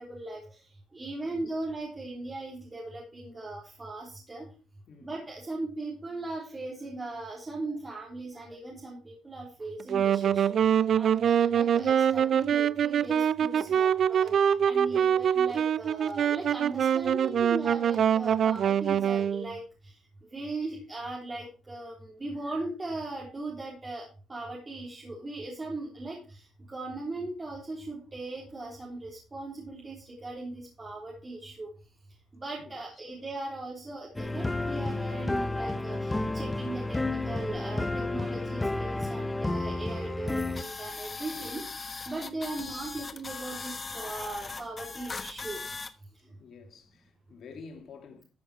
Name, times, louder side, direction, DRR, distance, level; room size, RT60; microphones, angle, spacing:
voice 1, 0.1-0.4 0.9-4.5 5.0-10.6 11.0-19.6 20.3-24.0 24.3-26.2 26.7-30.0 30.2-31.7 32.4-41.6 42.1-45.6, right 2 dB, 25° right, 3.6 m, -38 dB
Wind instrument woodwind instrument, 9.8-19.5, right 8 dB, 60° right, 0.4 m, -24 dB
sound 1, 34.2-40.6, left 2 dB, 15° left, 0.9 m, -31 dB
sound 2, 40.6-45.9, left 4 dB, 30° left, 1.2 m, -39 dB
voice 2, 46.4-48.2, left 5 dB, 60° left, 2.4 m, -49 dB
13.5 x 6.3 x 4.8 m
cardioid pair, 90°, 0 cm